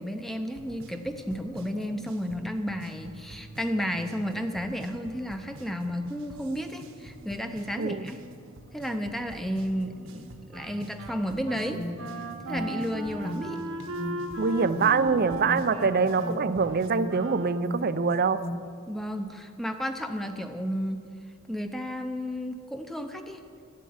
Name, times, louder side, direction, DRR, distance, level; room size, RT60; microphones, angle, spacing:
voice 1, 0.0-8.2 8.7-11.8 12.5-13.6 18.9-21.1 21.5-23.4, equal, ahead, 6 dB, 0.7 m, -32 dB
sound 1, 0.5-16.9, right 1 dB, 60° right, 1.1 m, -48 dB
Wind instrument woodwind instrument, 10.5-17.9, right 1 dB, 85° right, 1.5 m, -38 dB
Alarm, 11.7-18.7, equal, 40° left, 1.3 m, -39 dB
voice 2, 14.4-18.4, right 5 dB, 45° right, 13 dB, 0.5 m, -24 dB
13.0 x 7.5 x 9.4 m, 2.3 s
head